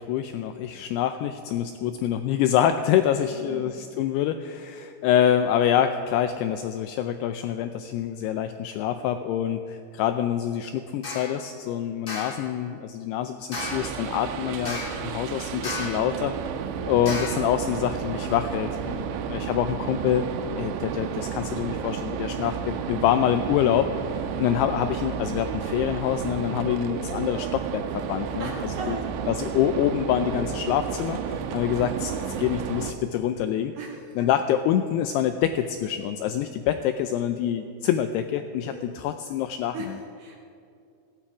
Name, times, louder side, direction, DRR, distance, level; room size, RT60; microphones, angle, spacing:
voice 1, 0.0-16.4 16.9-20.3 20.6-24.0 24.4-29.0 29.3-33.7 34.2-39.9, left 10 dB, 85° left, 9 dB, 2.4 m, -26 dB
voice 2, 3.3-3.7 24.3-24.5 28.4-29.2 33.7-34.3 38.7-38.9 39.7-40.4, right 3 dB, 60° right, 0 dB, 2.4 m, -38 dB
sound 1, 11.0-11.4 12.1-12.5 13.5-14.0 14.7-15.1 15.6-16.1 17.1-17.5, left 3 dB, 25° left, 2.3 m, -34 dB
sound 2, 13.6-32.9, right 7 dB, 85° right, 3.1 m, -32 dB
17.5 x 15.5 x 4.9 m, 2.5 s
omnidirectional pair, 5.3 m